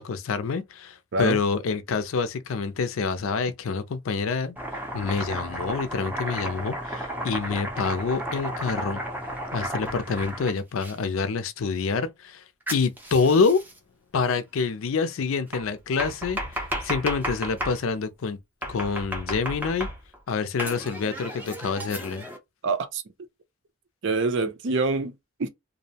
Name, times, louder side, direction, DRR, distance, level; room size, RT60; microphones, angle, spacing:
voice 1, 0.0-4.6 4.9-9.0 9.5-12.4 12.7-13.6 14.1-18.4 18.7-19.9 20.3-22.3, left 5 dB, 75° left, 0.4 m, -27 dB
Domestic sounds home sounds, 4.6-10.9 12.7-13.8 15.5-17.8 18.6-20.2 20.6-22.4, right 1 dB, 10° right, 0.5 m, -33 dB
voice 2, 22.6-23.0 24.0-25.1 25.4-25.5, right 3 dB, 60° right, 0.5 m, -25 dB
2.6 x 2.0 x 2.7 m
head